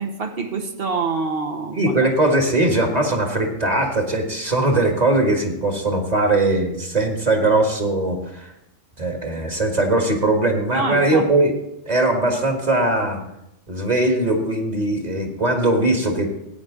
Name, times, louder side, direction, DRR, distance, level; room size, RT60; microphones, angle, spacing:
voice 1, 0.0-1.9 10.7-11.3, right 4 dB, 55° right, 7 dB, 1.3 m, -26 dB
voice 2, 1.7-8.5 9.0-11.5 11.8-13.2 13.7-16.3, right 2 dB, 35° right, 2 dB, 1.8 m, -20 dB
14.5 x 9.3 x 3.8 m, 0.84 s
omnidirectional pair, 1.2 m